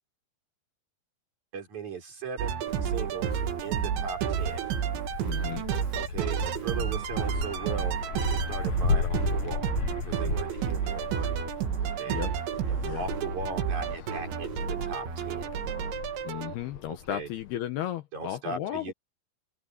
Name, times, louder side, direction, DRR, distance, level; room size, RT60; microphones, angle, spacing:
voice 1, 1.5-4.6 5.9-9.7 10.0-11.5 11.8-12.2 12.7-15.5 16.9-17.3 18.1-18.9, right 5 dB, 40° right, 5.3 m, -38 dB
sound 1, 2.4-16.5, right 8 dB, 80° right, 4.3 m, -31 dB
Wind, 2.7-17.6, left 5 dB, 55° left, 2.2 m, -36 dB
sound 2, 3.7-9.4, right 5 dB, 60° right, 4.0 m, -47 dB
voice 2, 5.2-5.7 12.1-12.3 12.9-13.0 16.2-18.9, left 12 dB, 70° left, 2.8 m, -34 dB
open air
omnidirectional pair, 5.2 m